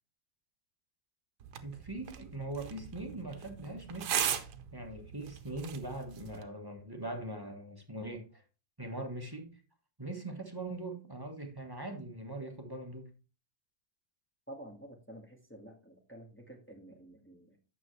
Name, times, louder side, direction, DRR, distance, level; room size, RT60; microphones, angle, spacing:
sound 1, 1.4-6.4, right 9 dB, 65° right, 1.3 m, -39 dB
voice 1, 1.6-4.5 4.7-8.4 8.8-9.5 10.0-13.1, right 2 dB, 15° right, 1.0 m, -41 dB
voice 2, 14.5-17.6, right 1 dB, 5° left, 1.5 m, -50 dB
9.2 x 6.8 x 3.2 m
omnidirectional pair, 2.0 m